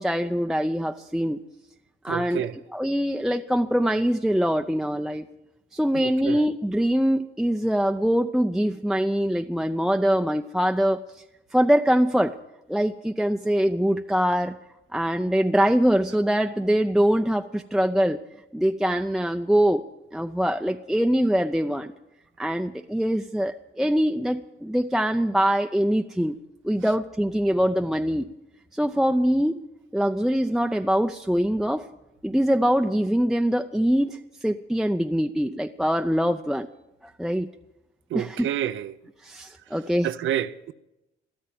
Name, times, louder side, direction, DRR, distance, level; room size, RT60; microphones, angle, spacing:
voice 1, 0.0-1.4 2.0-2.5 2.7-5.3 5.7-11.2 11.5-12.3 12.7-14.6 14.9-18.2 18.5-19.8 20.1-21.9 22.4-26.4 26.6-28.3 28.7-29.6 29.9-31.8 32.2-36.7 37.0-37.5 38.1-38.5 39.2-40.1, equal, ahead, 0.5 m, -23 dB
voice 2, 2.1-2.5 5.9-6.4 38.1-38.9 40.0-40.7, right 11 dB, 75° right, 0.7 m, -29 dB
13.5 x 13.0 x 7.0 m
cardioid pair, 90°, 20 cm